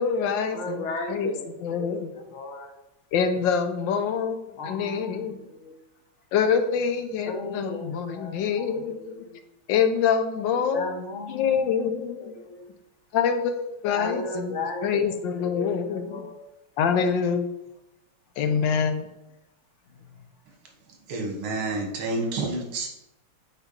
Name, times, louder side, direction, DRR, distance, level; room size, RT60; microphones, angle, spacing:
voice 1, 0.0-1.3 1.6-2.1 3.1-5.4 6.3-9.3 9.7-11.0 11.3-12.3 13.1-16.3 16.8-17.5 18.4-19.1, left 6 dB, 75° left, 8 dB, 1.3 m, -26 dB
voice 2, 0.5-2.7 4.6-5.8 7.2-9.4 10.7-11.8 12.2-12.7 13.9-16.5, left 3 dB, 45° left, 3 dB, 1.0 m, -36 dB
voice 3, 21.1-22.9, right 2 dB, 80° right, 2 dB, 2.1 m, -29 dB
7.9 x 4.3 x 3.9 m, 0.88 s
omnidirectional pair, 2.3 m